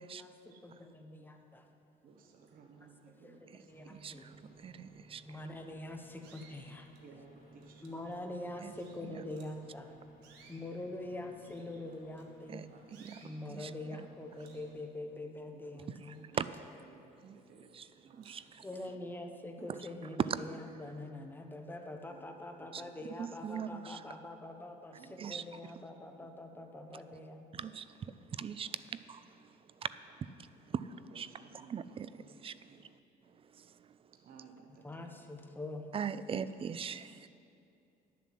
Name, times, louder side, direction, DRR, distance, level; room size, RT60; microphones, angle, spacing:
voice 1, 0.0-1.7 3.2-3.3 3.7-4.3 5.3-6.9 7.8-9.9 10.5-12.6 13.2-16.3 18.6-27.5 34.8-35.9, left 2 dB, 10° left, 4 dB, 1.1 m, -44 dB
voice 2, 2.0-4.8 7.0-8.2 11.0-11.3 11.7-12.0 12.6-13.5 15.5-16.5 16.8-18.3 18.5-19.1 19.4-19.5 22.1-22.3 22.6-23.1 25.0-25.2 25.4-25.5 26.0-27.0 31.1-32.9 34.2-35.2 35.8-35.9 36.6-36.9, right 5 dB, 55° right, 2 dB, 1.2 m, -60 dB
voice 3, 3.5-5.4 8.6-8.7 9.0-9.2 12.5-12.7 13.0-13.2 13.5-13.7 16.1-16.5 17.2-17.4 17.7-17.9 18.2-18.6 19.7-19.8 20.2-20.4 22.7-22.8 23.1-24.0 25.2-25.7 27.5-31.3 31.7-32.1 32.4-32.5 33.3-34.1 35.9-37.3, right 7 dB, 35° right, 15 dB, 0.4 m, -41 dB
sound 1, 3.7-14.7, right 1 dB, 50° left, 3.2 m, -59 dB
sound 2, 6.2-7.1 7.6-9.6 10.1-12.5 12.9-13.4 13.8-14.1 14.4-15.6 15.8-17.1 17.6-17.7 18.2-18.7, right 5 dB, 90° right, 1.5 m, -63 dB
11.0 x 7.3 x 7.7 m, 2.6 s
cardioid pair, 110°, 17 cm